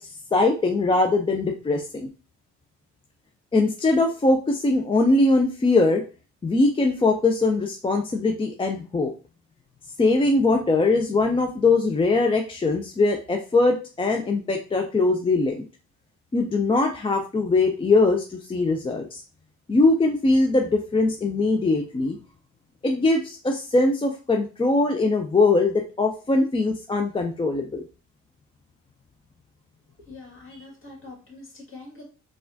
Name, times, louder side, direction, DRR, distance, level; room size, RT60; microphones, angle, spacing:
voice 1, 0.0-2.1 3.5-6.0 6.4-9.1 10.0-15.6 16.3-19.2 19.7-22.2 22.8-27.8, left 3 dB, 20° left, 3 dB, 0.4 m, -21 dB
voice 2, 30.1-32.0, left 3 dB, 45° left, -1 dB, 1.8 m, -44 dB
4.0 x 2.4 x 2.6 m, 0.34 s
cardioid pair, 90°, 30 cm